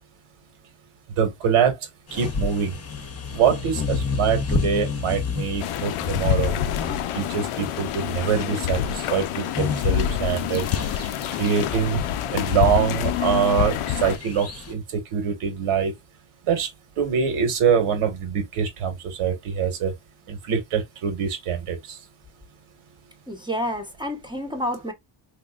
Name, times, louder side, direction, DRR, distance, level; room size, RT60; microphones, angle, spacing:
voice 1, 1.2-1.8 2.1-2.7 3.3-6.5 7.1-10.6 10.9-11.0 11.3-12.0 12.3-14.8 15.1-15.9 16.5-16.7 17.0-19.9 20.3-22.0, right 7 dB, 80° right, 1.7 m, -24 dB
sound 1, 2.1-14.7, left 5 dB, 30° left, 0.9 m, -32 dB
sound 2, 5.6-14.2, left 11 dB, 80° left, 0.6 m, -26 dB
voice 2, 23.3-24.9, equal, 10° right, 0.9 m, -29 dB
3.7 x 2.9 x 2.4 m
cardioid pair, 100°, 50 cm